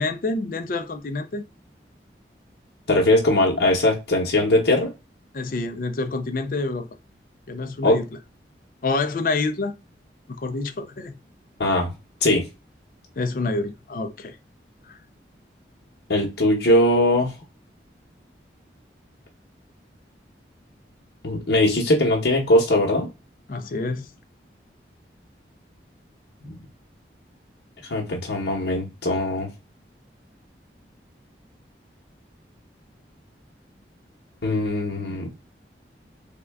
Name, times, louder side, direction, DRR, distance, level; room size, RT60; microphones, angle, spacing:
voice 1, 0.0-1.4 5.3-6.9 7.5-8.1 8.8-9.8 10.3-11.1 13.2-14.4 14.9-15.0 23.5-24.1, left 3 dB, 50° left, 0.4 m, -27 dB
voice 2, 2.9-4.9 7.8-8.0 11.6-11.9 12.2-12.5 16.1-17.3 21.2-23.1 26.5-26.6 27.9-29.5 34.4-35.3, left 1 dB, 75° left, 0.9 m, -20 dB
3.6 x 2.2 x 3.4 m
head